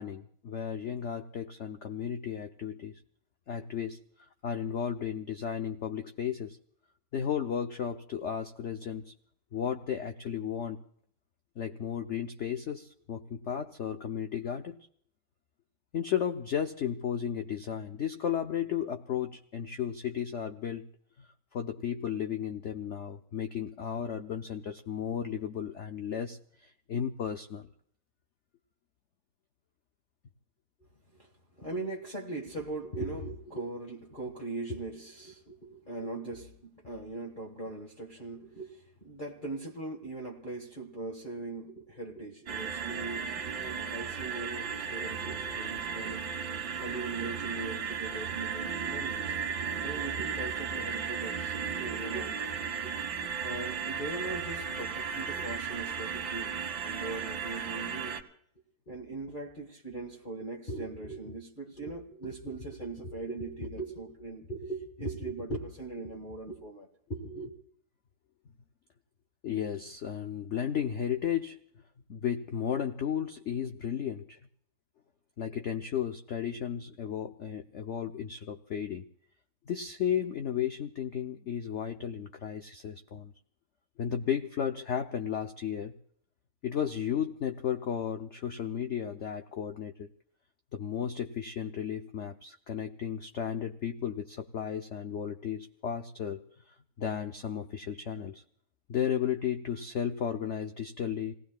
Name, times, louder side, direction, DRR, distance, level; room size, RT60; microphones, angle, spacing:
voice 1, 0.0-3.0 3.5-4.0 4.4-6.6 7.1-9.1 9.5-10.8 11.6-14.8 15.9-20.8 21.2-21.3 21.5-27.7 49.7-49.8 69.4-71.6 72.1-74.4 75.4-79.1 79.7-83.3 84.0-85.9 86.6-90.1 90.7-98.4 98.9-101.3, left 8 dB, 60° left, 0.7 m, -34 dB
voice 2, 31.5-49.5 49.8-52.5 52.8-52.9 53.4-56.6 56.8-58.2 58.9-67.5, right 2 dB, 30° left, 1.6 m, -40 dB
sound 1, 42.5-58.2, right 6 dB, 80° right, 2.1 m, -35 dB
28.5 x 18.5 x 2.3 m
omnidirectional pair, 2.0 m